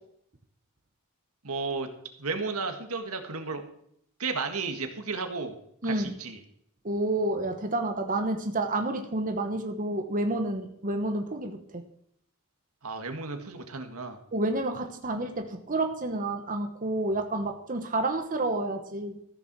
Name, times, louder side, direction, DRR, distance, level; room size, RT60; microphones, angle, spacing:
voice 1, 1.4-1.9 2.2-3.6 4.2-5.5 5.8-6.4 12.8-14.2, right 4 dB, 80° right, 6 dB, 1.8 m, -33 dB
voice 2, 5.8-6.2 6.8-11.8 14.3-19.2, right 2 dB, 40° right, 5 dB, 1.2 m, -29 dB
14.0 x 7.0 x 6.1 m, 0.71 s
head